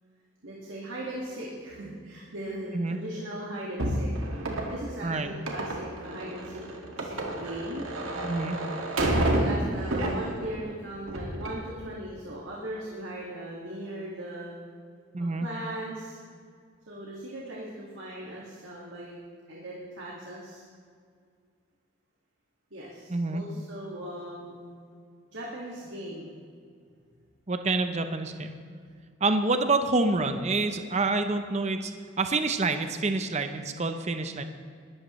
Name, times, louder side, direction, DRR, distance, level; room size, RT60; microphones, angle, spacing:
voice 1, 0.4-4.1 4.6-6.6 7.0-7.9 9.1-14.6 15.2-16.2 16.9-19.2 19.5-20.6 22.7-24.7 25.3-26.4, right 1 dB, 65° right, -4 dB, 2.0 m, -38 dB
sound 1, 3.8-10.6 11.0-11.6, right 1 dB, 85° right, 2.0 m, -30 dB
voice 2, 8.2-8.6 15.1-15.5 23.1-23.4 27.5-28.6 29.2-31.9 32.2-34.4, right 3 dB, 30° right, 8 dB, 0.7 m, -27 dB
21.0 x 13.0 x 3.1 m, 2.2 s
head